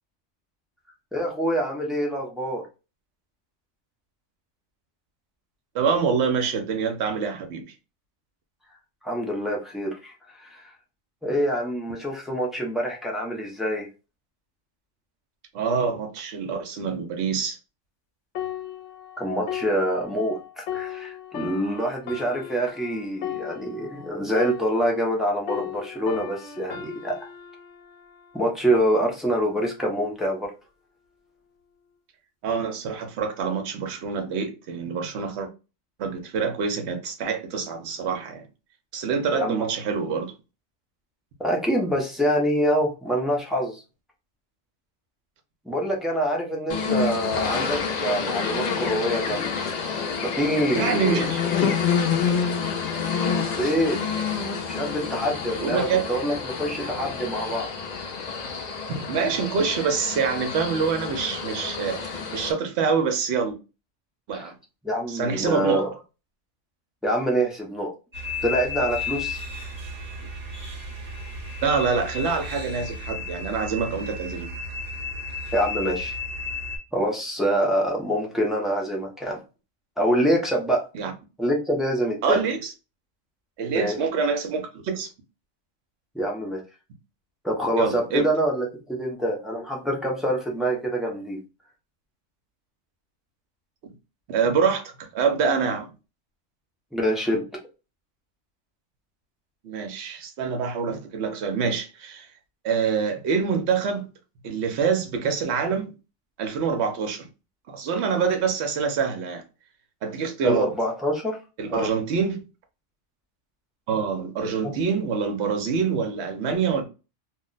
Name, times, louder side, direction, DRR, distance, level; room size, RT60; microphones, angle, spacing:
voice 1, 1.1-2.6 9.0-10.7 11.2-13.9 19.2-27.3 28.3-30.5 39.3-39.7 41.4-43.8 45.7-49.5 50.2-51.3 51.6-51.7 53.6-54.1 54.7-57.7 64.3-64.5 64.8-65.9 67.0-67.9 68.4-69.4 75.5-76.1 76.9-79.4 80.0-80.8 81.4-82.4 83.7-84.0 86.1-86.6 87.4-91.4 96.9-97.4 110.4-111.4 111.7-111.9 114.4-114.7, equal, ahead, 0.4 m, -25 dB
voice 2, 5.7-7.7 15.5-17.6 32.4-35.5 36.0-38.5 38.9-40.3 50.7-51.4 55.6-56.0 58.9-63.6 64.3-64.5 65.1-65.8 71.6-74.5 80.9-81.1 82.2-82.7 83.6-85.1 87.8-88.2 94.3-95.9 99.6-102.3 102.6-104.1 104.4-105.9 106.4-107.3 107.7-109.4 110.0-110.7 111.6-112.4 113.9-116.8, right 5 dB, 70° right, 0.9 m, -26 dB
sound 1, 18.4-25.2 25.5-29.1 29.7-29.9, left 10 dB, 75° left, 0.9 m, -37 dB
sound 2, 46.7-62.5, left 6 dB, 55° left, 0.4 m, -28 dB
sound 3, 68.1-76.8, left 3 dB, 40° right, 1.0 m, -33 dB
2.4 x 2.1 x 3.8 m
omnidirectional pair, 1.2 m